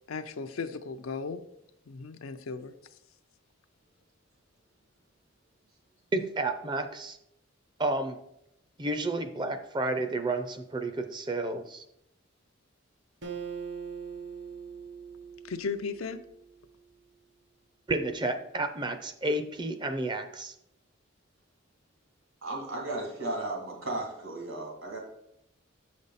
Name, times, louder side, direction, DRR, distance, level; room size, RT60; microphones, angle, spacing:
voice 1, 0.1-1.4 1.9-2.7 15.4-16.2, left 4 dB, 85° left, 8 dB, 0.5 m, -36 dB
voice 2, 6.1-7.2 7.8-8.2 8.8-11.8 17.9-20.5, right 2 dB, 20° right, 9 dB, 0.4 m, -31 dB
Acoustic guitar, 13.2-16.7, right 6 dB, 55° right, 1.0 m, -41 dB
voice 3, 22.4-25.0, right 2 dB, 75° right, -1 dB, 2.4 m, -35 dB
7.3 x 5.2 x 4.1 m, 0.80 s
head